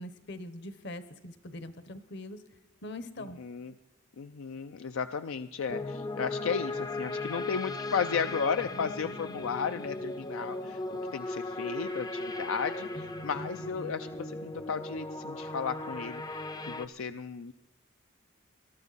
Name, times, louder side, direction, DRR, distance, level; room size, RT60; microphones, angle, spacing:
voice 1, 0.0-2.4 2.8-3.4, left 1 dB, 60° left, 12 dB, 1.0 m, -42 dB
voice 2, 3.4-3.7 4.2-10.8 11.1-17.5, left 6 dB, 85° left, 9 dB, 0.5 m, -34 dB
sound 1, 5.7-16.9, left 2 dB, 20° left, 0.5 m, -37 dB
21.5 x 12.0 x 4.1 m, 1.0 s
head